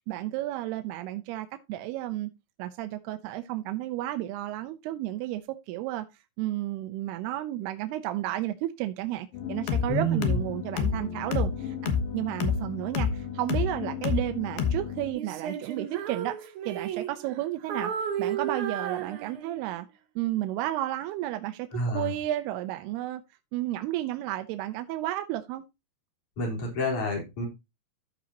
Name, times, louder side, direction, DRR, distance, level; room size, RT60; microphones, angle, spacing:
voice 1, 0.1-2.3 2.6-6.1 6.4-17.9 18.2-19.9 20.2-23.2 23.5-25.7, right 14 dB, 85° right, 2.6 m, -32 dB
sound 1, 9.3-15.1, left 7 dB, 70° left, 2.9 m, -30 dB
voice 2, 9.9-10.4 21.7-22.1 26.4-27.5, equal, 50° left, 4.9 m, -28 dB
Female singing, 15.1-17.4 17.7-19.8, right 8 dB, 65° right, 2.1 m, -34 dB
14.0 x 5.2 x 2.8 m
omnidirectional pair, 4.6 m